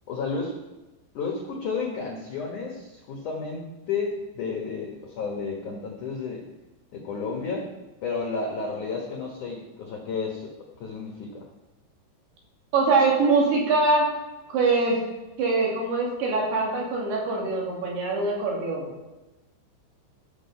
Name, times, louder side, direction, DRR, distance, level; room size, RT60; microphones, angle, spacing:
voice 1, 0.1-0.6 1.1-6.4 6.9-7.7 8.0-11.4, left 4 dB, 75° left, -1 dB, 1.8 m, -32 dB
voice 2, 12.7-14.1 14.5-15.0 15.4-18.9, right 3 dB, 60° right, -2 dB, 4.4 m, -23 dB
14.0 x 7.2 x 5.6 m, 1.1 s
omnidirectional pair, 5.8 m